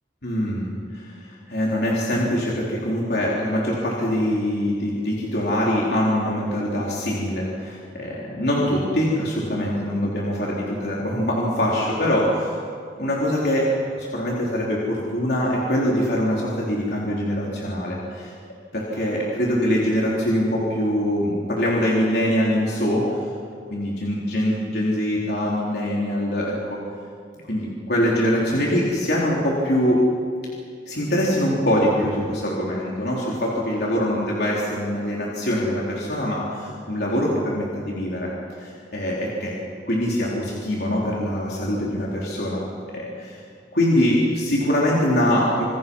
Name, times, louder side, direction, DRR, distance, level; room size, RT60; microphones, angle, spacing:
voice 1, 0.2-12.6 13.0-18.3 18.7-23.2 23.7-26.8 27.5-30.0 30.9-38.3 38.6-39.5 39.9-42.6 42.9-43.4 43.7-45.6, equal, 65° left, -5 dB, 3.9 m, -23 dB
27.5 x 27.0 x 5.6 m, 2.3 s
head